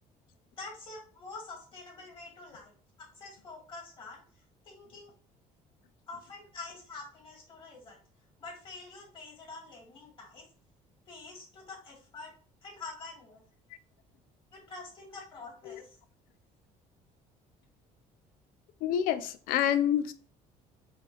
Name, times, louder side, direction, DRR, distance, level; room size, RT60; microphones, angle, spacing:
voice 1, 0.6-4.2 4.7-5.1 6.1-8.0 8.4-10.4 11.1-12.3 12.6-13.4 14.5-16.0, left 3 dB, 35° left, 2.0 m, -46 dB
voice 2, 18.8-20.1, left 10 dB, 80° left, 0.5 m, -27 dB
5.0 x 2.4 x 3.3 m
cardioid pair, 120°, 14 cm